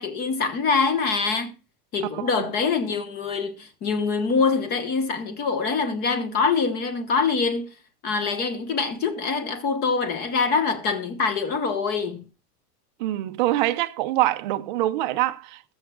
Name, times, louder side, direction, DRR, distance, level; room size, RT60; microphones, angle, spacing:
voice 1, 0.0-1.5 1.9-7.7 8.0-12.3, left 5 dB, 20° left, 1.1 m, -24 dB
voice 2, 13.0-15.7, right 16 dB, 30° right, 0.7 m, -24 dB
21.0 x 7.2 x 2.4 m
supercardioid pair, 175°, 47 cm